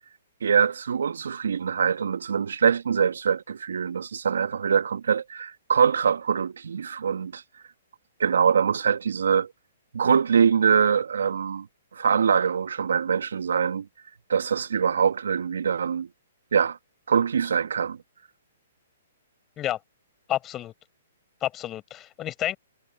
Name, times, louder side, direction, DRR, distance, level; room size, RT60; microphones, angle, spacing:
voice 1, 0.4-7.4 8.2-9.5 9.9-11.7 11.9-13.8 14.3-16.1 16.5-16.8 17.1-18.0, right 7 dB, 75° right, 1.7 m, -23 dB
voice 2, 20.3-20.7 21.4-22.6, left 13 dB, 25° left, 4.8 m, -30 dB
hypercardioid pair, 130°, 0 cm